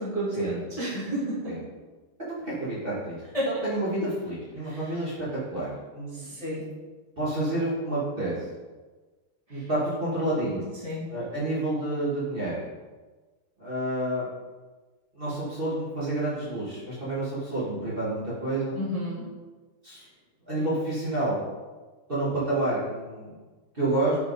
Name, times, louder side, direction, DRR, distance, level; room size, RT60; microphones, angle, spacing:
voice 1, 0.0-1.6 3.3-3.6 4.6-5.0 6.1-6.7 9.5-9.7 10.8-11.1 18.8-19.2, equal, 20° left, -8 dB, 1.3 m, -31 dB
voice 2, 2.3-3.2 3.6-6.4 7.2-8.3 9.5-10.7 11.1-12.6 13.6-14.3 15.1-18.7 19.8-20.0 20.5-21.4 22.1-23.4 23.7-24.2, right 1 dB, 30° right, -9 dB, 1.5 m, -29 dB
5.6 x 4.8 x 4.6 m, 1.3 s
omnidirectional pair, 2.4 m